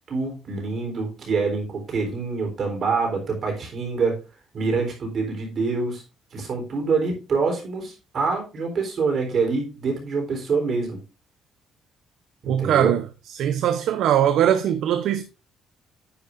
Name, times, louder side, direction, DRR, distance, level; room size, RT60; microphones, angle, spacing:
voice 1, 0.1-4.2 4.5-6.0 6.3-11.0 12.4-12.9, right 4 dB, 40° right, 3.8 m, -25 dB
voice 2, 12.5-13.0 13.3-15.2, right 10 dB, 70° right, 0.8 m, -21 dB
10.0 x 9.1 x 2.6 m
cardioid pair, 170°, 0 cm